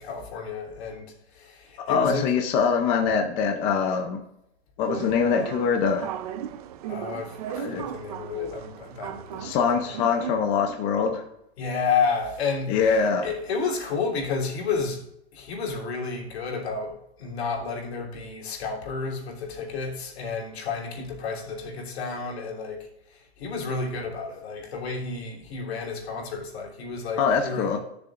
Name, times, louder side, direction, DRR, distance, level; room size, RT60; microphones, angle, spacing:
voice 1, 0.0-2.2 6.9-9.6 11.6-15.0 15.3-22.9 23.4-27.7, left 5 dB, 70° left, 3.3 m, -31 dB
voice 2, 1.8-4.2 4.8-6.1 7.6-7.8 9.4-11.2 12.7-13.3 27.2-27.8, left 6 dB, 20° left, 0.6 m, -23 dB
sound 1, 4.8-10.4, right 10 dB, 35° right, 0.6 m, -37 dB
20.0 x 6.9 x 2.5 m
supercardioid pair, 165°, 33 cm